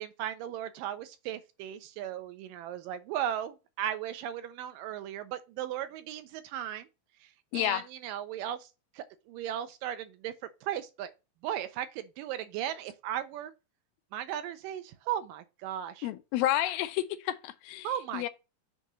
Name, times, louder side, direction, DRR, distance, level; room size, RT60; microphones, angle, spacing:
voice 1, 0.0-6.9 7.5-8.7 9.0-10.3 10.6-11.1 11.4-13.5 14.1-16.1 17.8-18.3, right 11 dB, 80° right, 2.2 m, -36 dB
voice 2, 7.5-7.9 16.0-18.3, left 14 dB, 85° left, 2.5 m, -30 dB
8.1 x 2.9 x 5.8 m
omnidirectional pair, 4.1 m